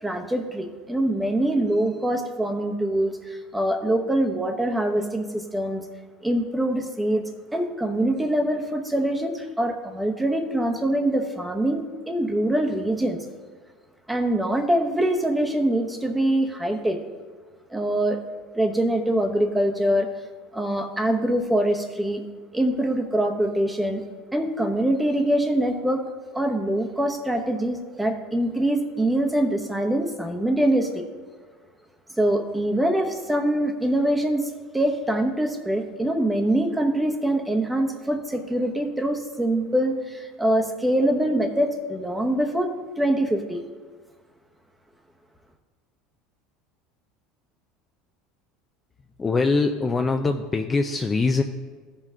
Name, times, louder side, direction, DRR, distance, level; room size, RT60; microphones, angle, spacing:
voice 1, 0.0-5.8 6.2-7.2 7.5-13.2 14.1-17.0 17.7-18.2 18.5-20.1 20.5-22.2 22.5-24.0 24.3-26.0 26.3-31.0 32.2-42.7 43.0-43.6, right 1 dB, 5° right, 4 dB, 0.9 m, -24 dB
voice 2, 49.2-51.4, left 3 dB, 20° left, 5 dB, 0.4 m, -23 dB
14.5 x 5.5 x 3.7 m, 1.5 s
supercardioid pair, 115°, 0 cm